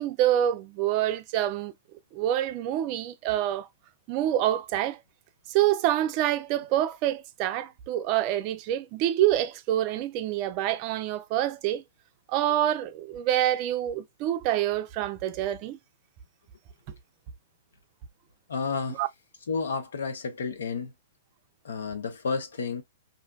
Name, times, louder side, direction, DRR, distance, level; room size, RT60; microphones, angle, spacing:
voice 1, 0.0-1.7 2.1-3.7 4.1-5.0 5.5-11.8 12.3-15.8 18.9-19.1, right 12 dB, 40° right, 0.4 m, -26 dB
voice 2, 18.5-19.0 19.5-20.9 21.6-22.8, left 5 dB, 75° left, 0.7 m, -31 dB
2.6 x 2.2 x 2.2 m
hypercardioid pair, 120°, 0 cm